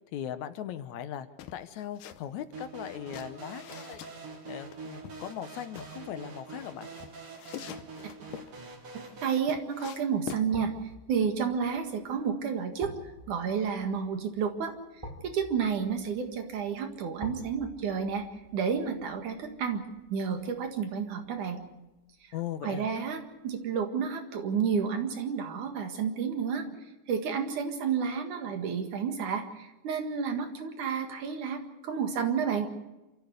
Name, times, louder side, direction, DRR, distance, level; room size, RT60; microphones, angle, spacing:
voice 1, 0.1-4.1 4.5-6.9 22.3-22.9, left 10 dB, 75° left, 11 dB, 2.1 m, -39 dB
sound 1, 1.4-2.2 2.5-4.1 4.7-5.9 6.6-8.5 9.0-10.5, left 11 dB, 90° left, 2.5 m, -44 dB
sound 2, 2.5-9.4, right 3 dB, 45° right, 3.0 m, -45 dB
voice 2, 9.2-10.7 11.1-12.9 13.3-14.7 15.2-18.2 18.5-19.8 20.1-21.6 22.6-26.6 27.1-32.7, right 6 dB, 75° right, 5 dB, 3.3 m, -30 dB
sound 3, 10.5-21.5 21.9-22.0, equal, 10° right, 2.7 m, -49 dB
27.5 x 14.0 x 8.1 m, 1.0 s
omnidirectional pair, 3.6 m